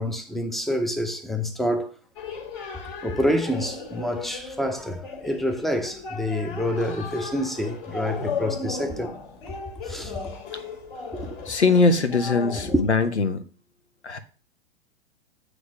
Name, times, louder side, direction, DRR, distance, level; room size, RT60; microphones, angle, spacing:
voice 1, 0.0-1.9 3.0-9.2 9.9-10.3 11.1-11.5 12.6-12.8, equal, ahead, 0.6 m, -27 dB
sound 1, 2.2-12.9, left 5 dB, 50° left, 1.9 m, -36 dB
voice 2, 11.5-13.4 14.0-14.2, left 3 dB, 85° left, 1.0 m, -21 dB
7.9 x 3.4 x 6.1 m
figure-of-eight pair, 105°, 33 cm